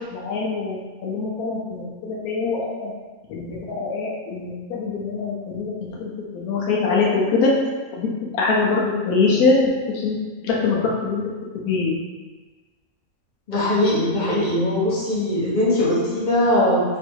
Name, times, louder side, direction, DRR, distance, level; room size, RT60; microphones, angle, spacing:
voice 1, 0.1-2.9 3.3-5.7 6.0-7.5 8.0-10.2 10.4-11.3 11.7-12.0, left 4 dB, 85° left, -3 dB, 1.2 m, -23 dB
voice 2, 13.5-16.8, left 1 dB, 35° left, -8 dB, 1.2 m, -20 dB
3.2 x 2.6 x 4.5 m, 1.3 s
omnidirectional pair, 1.5 m